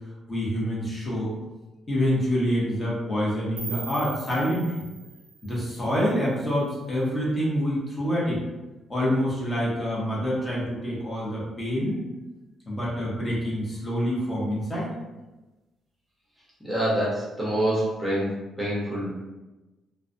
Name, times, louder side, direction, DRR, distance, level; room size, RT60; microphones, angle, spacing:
voice 1, 0.3-1.3 1.9-4.7 5.4-8.4 8.9-12.0 12.7-14.9, equal, 20° left, -6 dB, 0.9 m, -26 dB
sound 1, 3.6-6.5, right 4 dB, 80° right, 0.5 m, -41 dB
voice 2, 16.6-19.2, right 1 dB, 5° right, -8 dB, 0.9 m, -26 dB
2.3 x 2.1 x 2.6 m, 1.1 s
cardioid pair, 90°, 0 cm